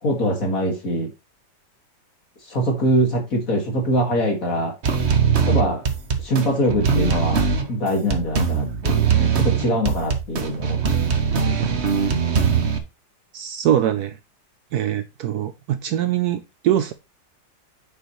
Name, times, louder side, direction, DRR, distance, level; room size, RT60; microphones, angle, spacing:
voice 1, 0.0-1.1 2.5-4.8 5.5-5.8 6.2-10.8, equal, 50° left, 2.4 m, -23 dB
sound 1, 4.8-12.8, right 6 dB, 45° right, 1.1 m, -21 dB
voice 2, 13.3-14.2 14.7-16.9, right 11 dB, 70° right, 1.0 m, -22 dB
8.8 x 6.7 x 3.1 m
omnidirectional pair, 2.0 m